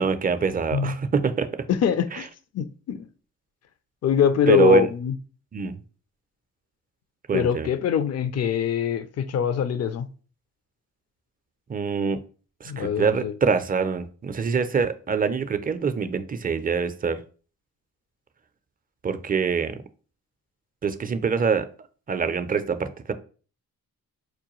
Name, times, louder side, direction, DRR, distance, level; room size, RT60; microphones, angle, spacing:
voice 1, 0.0-1.5 4.5-4.9 5.5-5.8 7.3-7.7 11.7-12.2 12.6-17.2 19.0-19.8 20.8-21.7 22.1-23.1, right 5 dB, 25° right, 0.4 m, -24 dB
voice 2, 1.7-2.3 2.5-3.1 4.0-5.1 7.3-10.1 12.6-13.3, left 8 dB, 45° left, 0.5 m, -23 dB
4.6 x 2.2 x 3.0 m
supercardioid pair, 45°, 36 cm